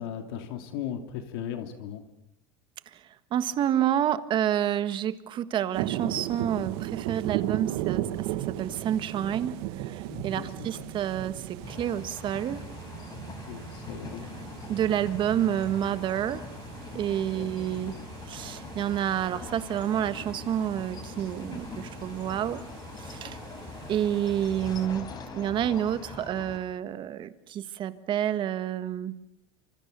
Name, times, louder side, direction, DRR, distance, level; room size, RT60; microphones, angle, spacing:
voice 1, 0.0-2.0 10.1-11.0 13.5-14.3 17.4-17.5, left 9 dB, 75° left, 6 dB, 2.9 m, -37 dB
voice 2, 2.9-12.6 14.7-16.5 16.9-17.9 18.2-22.6 23.0-23.4 23.9-29.1, right 10 dB, 40° right, 12 dB, 1.5 m, -29 dB
sound 1, 5.7-24.9, right 14 dB, 70° right, 1.6 m, -37 dB
sound 2, 11.6-26.6, left 5 dB, 30° left, 4.5 m, -43 dB
27.5 x 25.5 x 6.9 m, 0.78 s
supercardioid pair, 130°, 13 cm